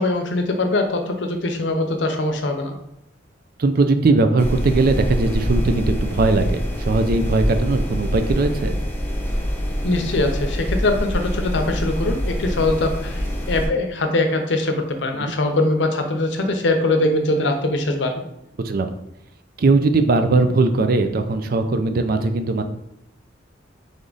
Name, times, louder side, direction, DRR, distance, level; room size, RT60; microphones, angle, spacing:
voice 1, 0.0-2.7 9.8-18.2, left 2 dB, 70° left, 5 dB, 0.7 m, -22 dB
voice 2, 3.6-8.8 15.2-15.3 18.6-18.9 19.6-22.6, right 3 dB, 55° right, 8 dB, 0.4 m, -19 dB
sound 1, 4.4-13.7, equal, 10° left, 0.7 m, -25 dB
3.7 x 3.5 x 3.9 m, 0.81 s
head